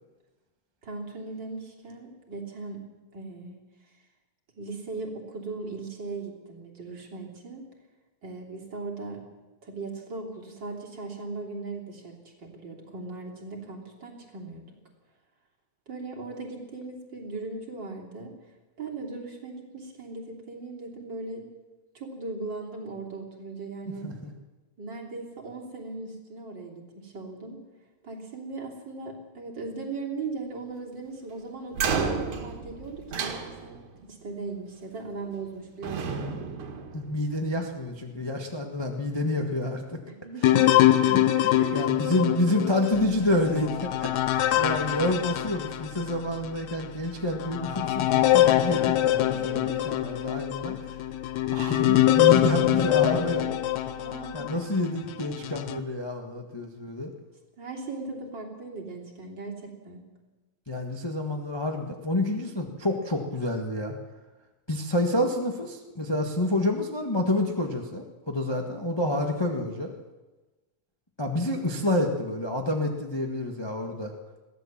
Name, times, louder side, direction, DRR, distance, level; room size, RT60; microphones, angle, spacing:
voice 1, 0.8-2.8 3.1-3.6 4.6-7.7 8.2-9.2 9.6-14.8 15.9-18.4 18.8-21.5 21.9-24.1 24.8-27.6 28.0-36.3 40.1-40.6 41.6-41.9 42.2-42.7 49.2-50.0 51.3-51.4 54.0-54.6 57.6-60.1, right 3 dB, 35° right, -1 dB, 3.6 m, -38 dB
sound 1, 31.7-34.0 35.1-35.5 35.8-37.6, right 6 dB, 75° right, 3.1 m, -32 dB
voice 2, 36.9-40.0 40.8-50.9 51.5-53.5 54.3-57.1 60.7-63.9 64.7-69.9 71.2-74.1, left 1 dB, 20° left, 2 dB, 0.6 m, -28 dB
sound 2, 40.4-46.2 46.7-46.8 47.4-54.6 55.2-55.8, left 13 dB, 75° left, 2.1 m, -24 dB
sound 3, 42.9-54.4, left 4 dB, 40° left, 3.0 m, -47 dB
22.0 x 16.0 x 7.4 m, 1.2 s
omnidirectional pair, 3.4 m